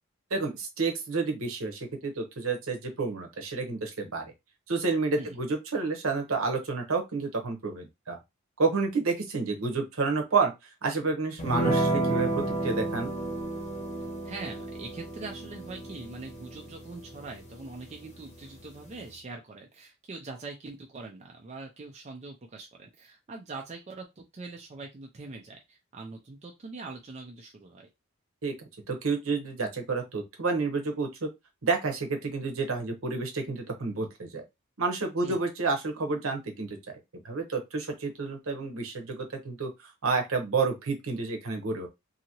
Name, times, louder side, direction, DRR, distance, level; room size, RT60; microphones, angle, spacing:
voice 1, 0.3-4.3 4.7-8.2 8.6-10.5 10.8-13.1 28.4-31.3 31.6-34.4 34.8-36.8 37.2-41.9, right 4 dB, 70° right, 4 dB, 0.9 m, -30 dB
sound 1, 11.4-19.1, right 2 dB, 30° left, 0.8 m, -32 dB
voice 2, 14.2-27.9 35.2-35.4, right 3 dB, 30° right, 1 dB, 0.4 m, -43 dB
2.8 x 2.6 x 2.8 m, 0.22 s
head